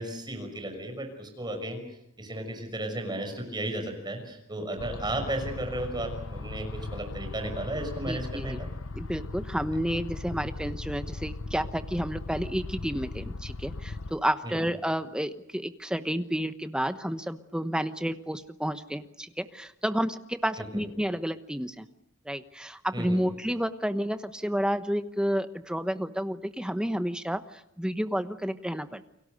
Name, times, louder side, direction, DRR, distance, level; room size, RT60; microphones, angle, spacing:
voice 1, 0.0-1.8 2.2-8.7 14.4-14.7 20.6-20.8 22.9-23.3, right 1 dB, 20° right, 5 dB, 6.0 m, -34 dB
sound 1, 4.8-14.1, left 3 dB, 80° left, 0.9 m, -38 dB
voice 2, 8.1-8.6 8.9-21.9 22.2-29.1, equal, 5° right, 9 dB, 1.1 m, -31 dB
30.0 x 23.0 x 6.6 m, 0.80 s
head